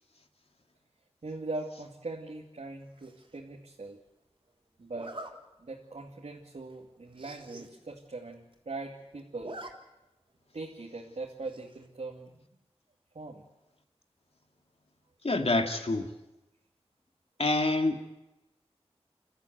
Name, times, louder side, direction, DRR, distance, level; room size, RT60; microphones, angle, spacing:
voice 1, 1.2-4.0 4.8-5.2 5.6-9.6 10.5-12.5 13.1-13.4, right 3 dB, 85° right, -1 dB, 2.4 m, -41 dB
Zipper (clothing), 3.0-3.4 4.9-5.3 5.9-6.1 6.4-6.5 6.7-6.8 7.1-7.7 8.1-8.2 8.3-8.9 9.2-9.7 10.0-10.1 11.5-11.9, right 2 dB, 50° right, 3.8 m, -45 dB
voice 2, 15.2-16.1 17.4-18.1, left 2 dB, 65° left, 4 dB, 2.4 m, -27 dB
30.0 x 14.0 x 9.4 m, 0.95 s
wide cardioid pair, 65°, 11 cm